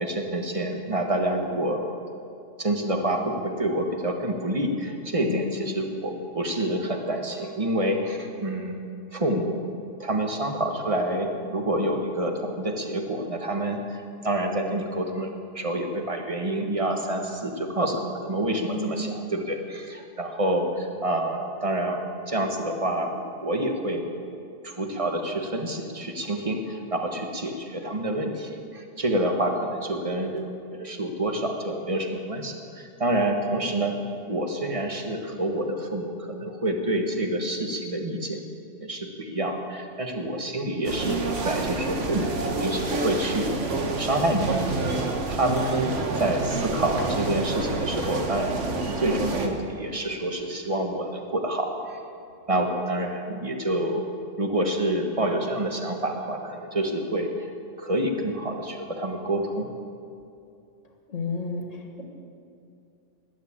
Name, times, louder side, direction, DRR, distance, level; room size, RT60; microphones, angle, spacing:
voice 1, 0.0-1.8 2.6-8.8 9.1-9.6 10.0-22.0 22.3-24.0 24.6-34.0 34.3-38.4 38.8-43.5 44.0-44.6 45.3-45.9 46.2-48.6 49.0-52.0 52.5-54.0 54.4-57.5 57.8-59.7, right 1 dB, 25° right, 3 dB, 1.5 m, -27 dB
voice 2, 5.2-5.7 18.7-19.1 61.1-62.0, left 3 dB, 80° left, 2 dB, 2.1 m, -32 dB
sound 1, 40.8-49.5, right 3 dB, 75° right, 1.7 m, -28 dB
19.5 x 7.5 x 8.6 m, 2.6 s
omnidirectional pair, 1.3 m